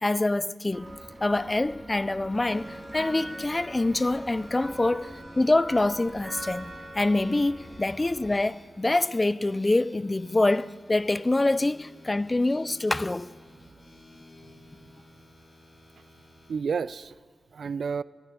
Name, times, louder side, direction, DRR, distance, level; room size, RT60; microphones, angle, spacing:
voice 1, 0.0-0.9 1.2-13.3, left 2 dB, 30° left, 0.4 m, -25 dB
sound 1, 0.7-8.4, right 1 dB, 25° right, 3.2 m, -42 dB
sound 2, 2.4-16.5, left 1 dB, 45° left, 5.0 m, -53 dB
voice 2, 14.4-14.9 16.0-16.1 16.5-17.2 17.5-18.0, right 6 dB, 80° right, 0.3 m, -32 dB
19.5 x 13.5 x 4.8 m
cardioid pair, 50°, 0 cm